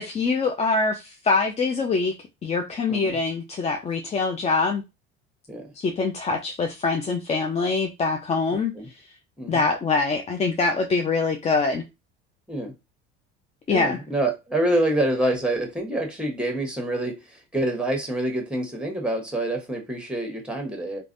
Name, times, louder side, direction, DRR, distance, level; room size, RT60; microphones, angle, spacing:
voice 1, 0.0-2.1 2.4-4.8 5.8-8.7 9.5-11.8 13.7-14.0, left 4 dB, 20° left, 0.4 m, -24 dB
voice 2, 8.5-8.9 9.4-9.7 12.5-12.7 13.7-21.0, right 1 dB, 5° right, 1.0 m, -27 dB
3.2 x 2.2 x 2.5 m
hypercardioid pair, 80°, 33 cm